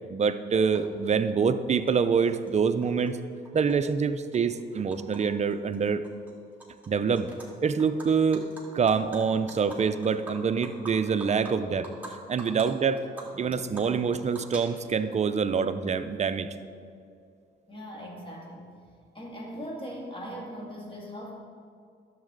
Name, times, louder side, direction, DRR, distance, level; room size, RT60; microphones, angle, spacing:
voice 1, 0.1-3.2 3.5-6.0 6.9-7.3 7.6-8.5 8.7-11.9 12.3-13.0 13.4-16.5, right 6 dB, 35° right, 10 dB, 0.5 m, -26 dB
Animal, 0.7-0.8 1.9-2.0 2.2-3.1 3.4-5.2 5.5-5.7 6.0-6.9 7.1-7.5 7.8-12.1 12.4-12.6 13.0-15.1, right 1 dB, 10° right, 2.1 m, -45 dB
voice 2, 17.7-18.7 19.1-21.3, equal, 25° left, -2 dB, 2.2 m, -39 dB
11.0 x 7.3 x 3.9 m, 2.4 s
cardioid pair, 90°, 20 cm